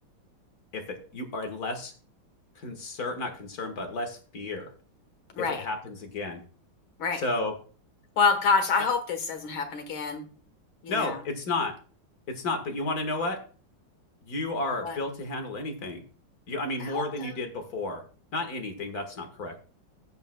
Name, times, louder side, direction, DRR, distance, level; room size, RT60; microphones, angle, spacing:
voice 1, 0.7-1.9 2.6-4.7 5.4-6.4 7.1-7.6 8.8-8.9 10.9-11.8 12.3-13.4 14.2-16.0 16.5-18.0 18.3-19.7, left 2 dB, 50° left, 6 dB, 1.9 m, -32 dB
voice 2, 8.2-10.2 10.8-11.2 14.8-15.0 16.8-17.3, left 4 dB, 90° left, 7 dB, 2.2 m, -27 dB
17.0 x 7.0 x 2.2 m, 0.39 s
omnidirectional pair, 2.2 m